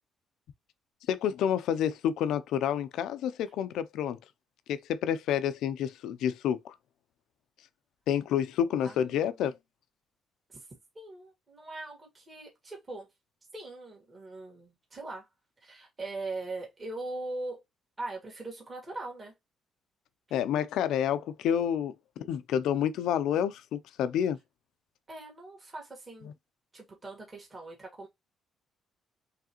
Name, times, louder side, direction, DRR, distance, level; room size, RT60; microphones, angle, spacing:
voice 1, 1.1-4.2 4.7-6.7 8.1-9.5 20.3-24.4, left 9 dB, 75° left, 0.5 m, -29 dB
voice 2, 8.8-9.3 10.5-10.6 10.9-13.1 13.5-15.3 15.6-17.6 18.0-19.3 25.1-26.3 26.7-28.1, right 2 dB, 20° right, 1.7 m, -41 dB
4.7 x 3.4 x 2.9 m
cardioid pair, 175°, 0 cm